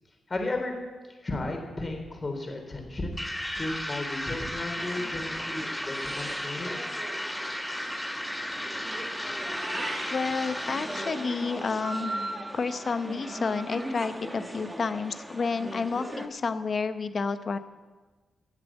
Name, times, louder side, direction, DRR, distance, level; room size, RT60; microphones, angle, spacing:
voice 1, 0.3-0.7 1.2-3.2 3.5-6.8, left 2 dB, 30° left, 3 dB, 3.4 m, -34 dB
sound 1, 3.2-11.4, left 1 dB, 5° left, 1.6 m, -35 dB
sound 2, 4.7-16.3, right 1 dB, 10° right, 1.3 m, -39 dB
Meow, 9.4-10.2, right 1 dB, 30° right, 3.9 m, -35 dB
voice 2, 10.1-12.1 12.5-17.6, left 4 dB, 50° left, 11 dB, 0.9 m, -30 dB
17.5 x 7.6 x 7.3 m, 1.3 s
cardioid pair, 90°, 0 cm